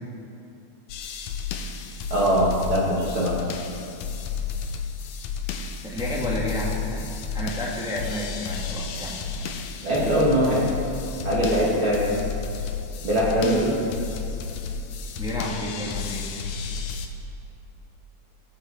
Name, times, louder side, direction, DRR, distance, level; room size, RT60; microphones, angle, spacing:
sound 1, 0.9-17.1, left 5 dB, 75° left, 2.0 m, -32 dB
voice 1, 2.1-3.5 9.8-10.8 11.2-12.1 13.0-13.8, equal, 50° right, -5 dB, 2.1 m, -22 dB
voice 2, 5.8-7.1 7.3-9.2 15.2-16.3, left 1 dB, 5° right, -4 dB, 0.5 m, -30 dB
18.0 x 8.2 x 4.7 m, 2.6 s
omnidirectional pair, 3.6 m